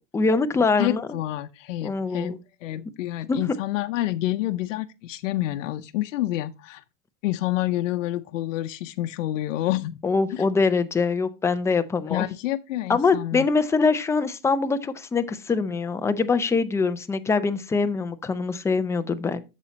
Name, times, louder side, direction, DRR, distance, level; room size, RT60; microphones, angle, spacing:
voice 1, 0.1-1.1 1.8-2.4 3.3-3.4 10.0-12.3 12.9-19.4, left 4 dB, 10° left, 0.4 m, -23 dB
voice 2, 0.8-2.3 2.6-6.8 7.2-10.0 10.3-10.4 12.1-13.5, left 15 dB, 90° left, 0.7 m, -28 dB
8.3 x 7.1 x 2.9 m
supercardioid pair, 145°, 37 cm